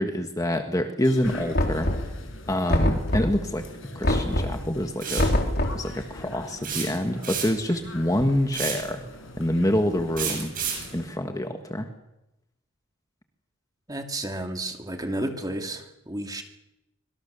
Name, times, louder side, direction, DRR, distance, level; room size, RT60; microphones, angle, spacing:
voice 1, 0.0-1.9 2.5-3.7 4.0-5.3 5.7-9.0 9.4-10.5 10.9-11.9, left 1 dB, 15° left, 5 dB, 1.6 m, -26 dB
sound 1, 1.0-11.1, left 1 dB, 65° left, 6.0 m, -43 dB
Knock, 1.5-2.3 2.7-3.5 4.0-4.7 5.2-5.9, left 1 dB, 50° left, 3.9 m, -24 dB
sound 2, 5.0-5.3 6.6-7.7 8.5-8.9 10.2-10.9, right 7 dB, 40° right, 7.7 m, -30 dB
voice 2, 13.9-16.4, right 1 dB, 20° right, 4 dB, 2.5 m, -32 dB
25.0 x 24.0 x 6.9 m, 0.91 s
head